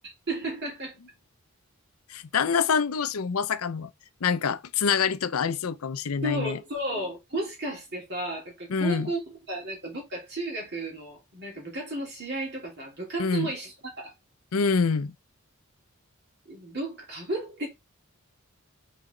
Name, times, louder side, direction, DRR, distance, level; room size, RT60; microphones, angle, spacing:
voice 1, 0.3-0.9 6.2-14.1 16.5-17.7, right 1 dB, 50° right, 3.4 m, -33 dB
voice 2, 2.1-3.9 4.2-6.6 8.7-9.1 13.2-13.5 14.5-15.1, left 6 dB, 85° left, 0.6 m, -26 dB
5.9 x 4.2 x 3.8 m
head